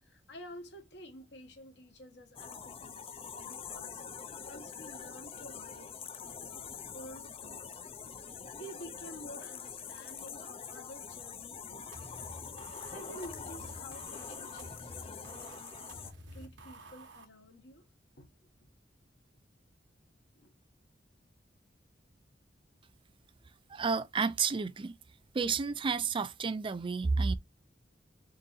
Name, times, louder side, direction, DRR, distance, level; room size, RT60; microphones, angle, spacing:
voice 1, 0.0-3.0 3.4-4.0 4.4-7.7 8.5-11.9 12.8-15.9 16.3-17.9 18.2-18.3 20.3-20.5, equal, 70° left, 1.4 m, -50 dB
sound 1, 2.4-16.1, left 6 dB, 35° left, 0.5 m, -45 dB
sound 2, 11.9-17.3, right 1 dB, 90° right, 1.1 m, -50 dB
voice 2, 23.7-24.9 25.3-27.4, right 4 dB, 30° right, 0.4 m, -31 dB
3.8 x 3.7 x 2.6 m
head